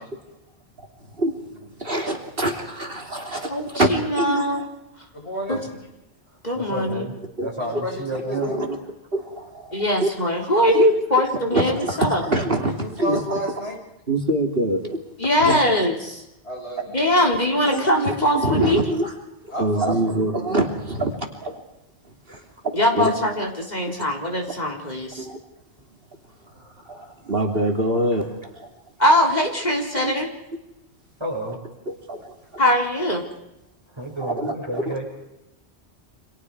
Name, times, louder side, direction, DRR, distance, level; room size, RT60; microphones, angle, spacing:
voice 1, 1.2-3.9 4.1-4.7 5.5-5.6 7.4-7.5 8.3-8.7 9.1-10.1 10.7-10.8 11.5-12.7 13.0-13.4 14.1-15.0 15.4-15.8 17.2-17.3 17.7-18.1 18.4-19.1 19.6-21.1 21.4-21.6 22.3-22.4 22.9-23.2 25.2-25.4 26.9-28.7 30.0-30.1 31.9-32.6 34.2-34.9, right 1 dB, 55° right, 2 dB, 3.4 m, -25 dB
voice 2, 3.5-4.7 5.5-5.6 6.4-7.1 9.7-12.2 15.2-16.2 16.9-18.8 22.7-25.3 29.0-30.3 32.6-33.2, left 1 dB, 40° left, 1 dB, 4.1 m, -21 dB
voice 3, 5.1-5.7 7.8-8.7 12.8-13.8 16.4-17.0 19.5-20.2, equal, 75° left, -1 dB, 8.0 m, -31 dB
voice 4, 6.5-8.5 26.5-27.1 31.2-31.6 33.9-35.1, right 1 dB, 25° right, 0 dB, 6.4 m, -31 dB
30.0 x 26.0 x 4.9 m, 0.89 s
omnidirectional pair, 1.1 m